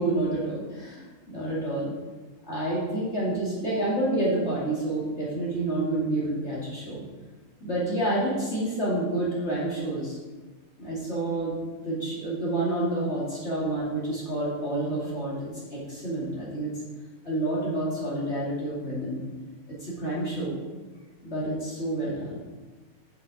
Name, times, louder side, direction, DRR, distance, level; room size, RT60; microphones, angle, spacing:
voice 1, 0.0-1.9 2.5-7.0 7.6-10.2 10.8-16.7 17.2-19.2 19.8-20.6 21.2-22.4, right 1 dB, 25° left, -7 dB, 1.9 m, -29 dB
7.1 x 5.5 x 5.1 m, 1.3 s
omnidirectional pair, 3.5 m